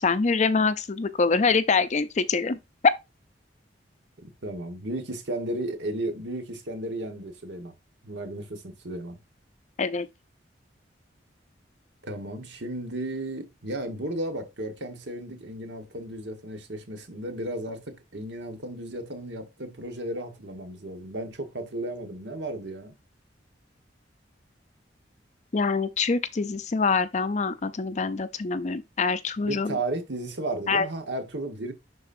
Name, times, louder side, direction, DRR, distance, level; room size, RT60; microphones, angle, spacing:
voice 1, 0.0-2.6 9.8-10.1 25.5-29.8 30.7-30.9, left 4 dB, 40° left, 0.5 m, -25 dB
voice 2, 4.4-7.7 8.0-9.2 12.0-22.9 29.4-31.7, right 1 dB, 70° right, 1.4 m, -34 dB
11.0 x 4.0 x 2.6 m
head